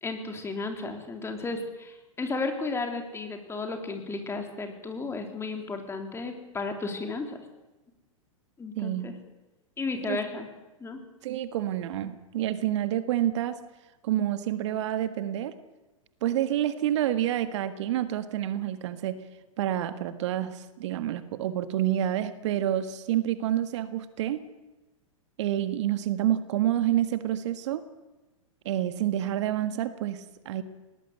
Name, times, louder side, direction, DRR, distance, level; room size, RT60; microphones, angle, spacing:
voice 1, 0.0-7.4 8.6-9.1 9.8-10.5 10.8-11.0, left 3 dB, 15° left, 5 dB, 3.5 m, -33 dB
voice 2, 8.7-9.1 10.1-10.2 11.2-13.6 14.0-15.5 16.2-19.2 19.6-24.4 25.4-27.8 28.6-30.6, right 12 dB, 60° right, 11 dB, 1.6 m, -28 dB
20.5 x 19.0 x 8.1 m, 1.1 s
hypercardioid pair, 105°, 18 cm